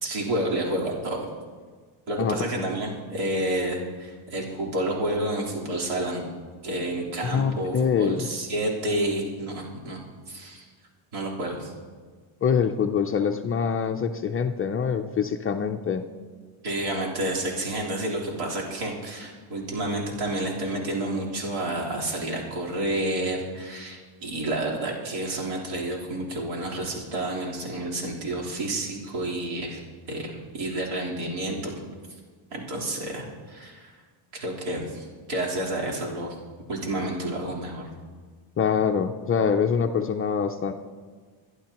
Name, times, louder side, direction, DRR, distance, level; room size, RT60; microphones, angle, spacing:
voice 1, 0.0-1.3 2.1-6.2 6.6-10.0 10.3-10.7 11.1-11.7 16.6-29.8 30.1-31.7 32.5-34.0 34.3-36.3 36.7-37.9, right 1 dB, 80° right, -3 dB, 3.7 m, -30 dB
voice 2, 2.2-2.6 7.3-8.3 12.4-16.0 38.6-40.7, left 7 dB, 30° left, 5 dB, 0.4 m, -25 dB
23.5 x 11.0 x 2.9 m, 1.5 s
cardioid pair, 160°, 48 cm